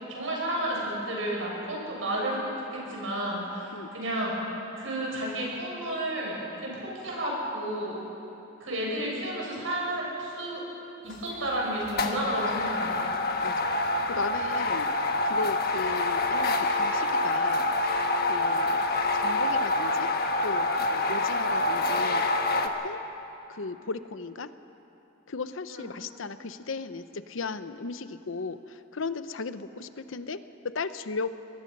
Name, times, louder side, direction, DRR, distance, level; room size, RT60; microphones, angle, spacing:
voice 1, 0.1-2.5 2.7-4.3 4.8-8.0 8.6-10.6 11.0-12.9 25.7-25.9, right 1 dB, 80° right, -3 dB, 6.7 m, -32 dB
sound 1, 11.1-11.4 11.9-22.7, left 2 dB, 50° left, 1.3 m, -26 dB
voice 2, 13.4-13.7 14.1-14.9 15.2-17.6 18.3-18.8 19.1-20.1 20.4-22.3 22.6-23.0 23.5-24.5 25.3-31.3, left 4 dB, 80° left, 12 dB, 0.8 m, -36 dB
24.0 x 20.0 x 5.5 m, 3.0 s
head